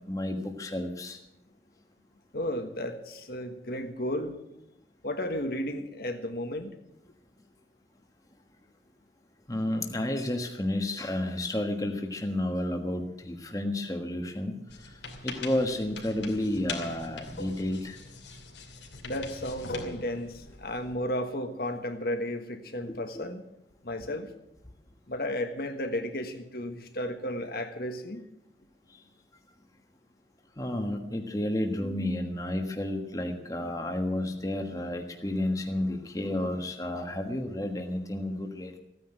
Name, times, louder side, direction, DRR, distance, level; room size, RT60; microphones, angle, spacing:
voice 1, 0.1-1.2 9.5-14.5 15.2-18.0 22.9-23.0 30.6-38.8, left 1 dB, 20° left, 4 dB, 1.4 m, -31 dB
voice 2, 2.3-4.4 5.0-6.7 19.0-23.4 23.8-24.3 25.1-28.2, left 1 dB, 55° left, 6 dB, 1.5 m, -33 dB
sound 1, 14.7-21.0, left 3 dB, 80° left, 2.6 m, -41 dB
15.5 x 9.6 x 8.9 m, 0.86 s
head